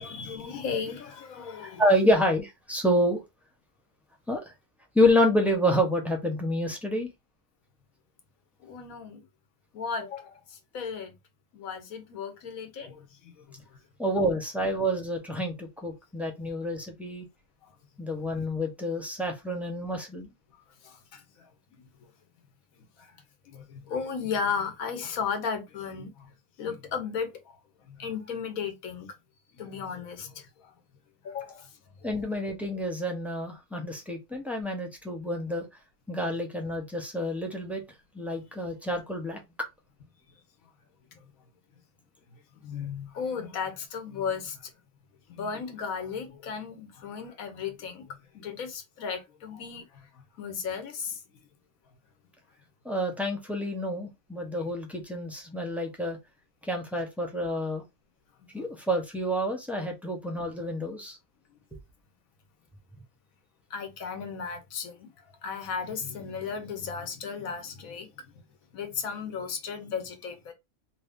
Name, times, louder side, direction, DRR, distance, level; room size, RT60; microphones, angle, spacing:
voice 1, 0.0-1.8 8.6-9.2 9.7-11.1 11.5-13.8 17.6-17.7 20.8-21.8 23.0-23.1 23.5-26.3 26.6-27.6 27.9-29.1 29.5-30.7 31.2-31.7 32.0-32.1 41.1-41.2 42.6-44.7 45.3-51.2 54.6-54.7 58.6-58.7 63.7-65.1 65.4-68.2 68.7-70.5, left 6 dB, 70° left, 1.2 m, -35 dB
voice 2, 1.8-3.2 4.3-4.4 4.9-7.1 14.0-17.3 18.0-20.3 32.0-35.7 36.1-37.8 38.1-39.4 52.8-56.2 56.6-57.8 58.5-61.2, equal, ahead, 0.4 m, -28 dB
2.7 x 2.6 x 3.5 m
omnidirectional pair, 1.6 m